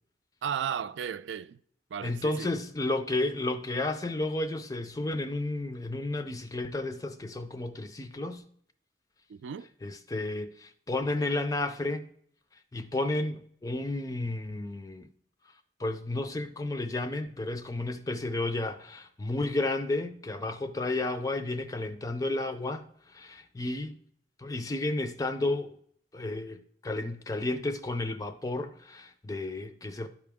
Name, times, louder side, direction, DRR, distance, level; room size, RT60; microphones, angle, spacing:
voice 1, 0.4-1.6 1.9-2.5 9.3-9.7, right 8 dB, 75° right, 0.3 m, -34 dB
voice 2, 2.0-8.4 9.8-12.1 12.7-15.1 15.8-24.0 24.4-25.7 26.1-30.1, left 2 dB, 20° left, 0.4 m, -32 dB
12.0 x 4.7 x 3.5 m
head